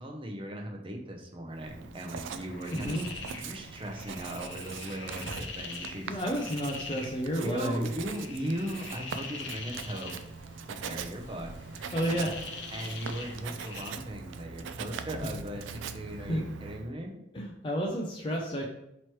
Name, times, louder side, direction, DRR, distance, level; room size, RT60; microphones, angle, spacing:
voice 1, 0.0-3.0 3.4-6.2 7.4-10.1 10.7-11.5 12.7-17.2, right 1 dB, 30° right, 1 dB, 0.6 m, -38 dB
Writing, 1.5-16.9, right 5 dB, 85° right, 0.3 m, -42 dB
sound 1, 2.3-13.9, left 4 dB, 80° left, 0.7 m, -44 dB
voice 2, 2.7-3.1 5.2-5.3 6.1-7.9 11.9-12.4 16.2-16.4 17.3-18.7, equal, 25° left, -1 dB, 0.4 m, -31 dB
3.0 x 3.0 x 4.5 m, 0.81 s
head